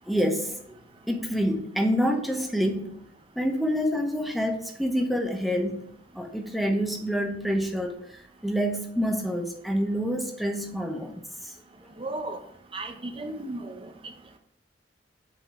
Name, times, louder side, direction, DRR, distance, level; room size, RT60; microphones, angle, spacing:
voice 1, 0.1-0.8 1.1-3.0 3.4-5.8 6.1-11.5, equal, ahead, 3 dB, 0.8 m, -27 dB
voice 2, 12.0-12.4 12.7-14.1, right 2 dB, 30° right, 6 dB, 0.8 m, -35 dB
5.6 x 5.4 x 4.7 m, 0.68 s
head